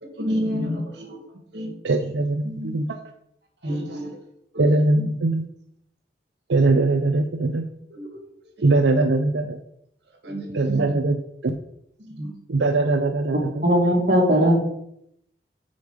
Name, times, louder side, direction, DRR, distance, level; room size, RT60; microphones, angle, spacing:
voice 1, 0.0-1.2 1.5-1.7 2.4-2.9 3.6-4.2 4.5-4.6 5.0-5.1 7.9-8.2 8.6-8.8 10.2-11.0 12.0-12.3, equal, 70° right, 3 dB, 2.1 m, -30 dB
voice 2, 1.8-2.9 4.6-5.4 6.5-7.6 8.6-9.6 10.5-11.2 11.4-11.6 12.5-13.6, right 2 dB, 90° right, 5 dB, 0.6 m, -21 dB
voice 3, 13.6-14.6, equal, 50° right, -1 dB, 2.4 m, -18 dB
9.5 x 5.3 x 5.2 m, 0.75 s
head